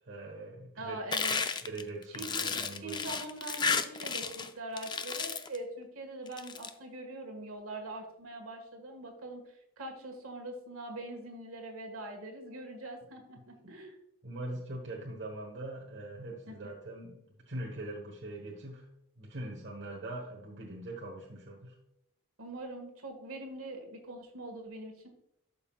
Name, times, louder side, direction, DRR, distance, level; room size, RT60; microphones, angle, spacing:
voice 1, 0.1-1.0 1.6-3.0 13.4-13.7 14.2-18.9 19.2-21.8, right 2 dB, 55° right, -2 dB, 1.2 m, -42 dB
voice 2, 0.8-1.4 2.1-14.0 16.5-16.6 22.4-25.1, right 2 dB, 75° right, 3 dB, 1.7 m, -43 dB
sound 1, 1.1-4.5 4.8-5.6 6.3-6.7, left 5 dB, 20° left, 0.3 m, -33 dB
12.0 x 5.6 x 2.4 m, 0.79 s
head